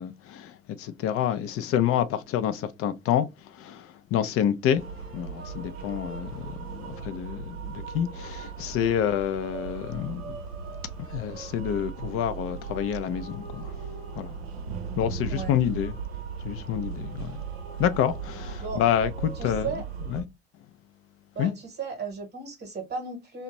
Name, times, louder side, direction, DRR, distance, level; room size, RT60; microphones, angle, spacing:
voice 1, 0.0-4.8 5.1-10.4 11.1-13.7 14.1-14.4 15.0-16.0 16.4-17.4 17.8-19.7 20.1-20.2 21.4-21.5, left 10 dB, 50° left, 0.5 m, -28 dB
sound 1, 4.8-20.2, right 6 dB, 85° right, 0.5 m, -37 dB
voice 2, 19.3-19.9 21.3-23.4, right 5 dB, 35° right, 1.0 m, -35 dB
2.5 x 2.1 x 2.9 m
hypercardioid pair, 65°, 30 cm